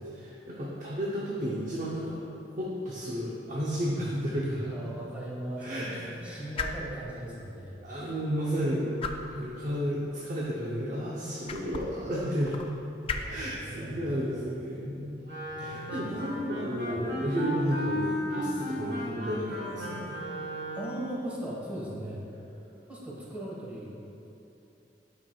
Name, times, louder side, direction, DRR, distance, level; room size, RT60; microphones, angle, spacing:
voice 1, 0.2-2.2 2.6-4.7 5.6-6.4 7.8-8.9 9.3-12.5 13.3-15.2 15.6-20.2, equal, 45° right, -5 dB, 0.7 m, -32 dB
sound 1, 3.5-17.1, left 4 dB, 35° left, 0.3 m, -43 dB
voice 2, 4.7-7.7 13.1-14.6 15.6-16.2 16.9-17.0 20.7-22.2 22.9-23.9, right 1 dB, 10° right, -6 dB, 1.3 m, -39 dB
Wind instrument woodwind instrument, 15.2-21.0, equal, 75° right, 1.4 m, -34 dB
8.9 x 5.9 x 2.3 m, 2.8 s
head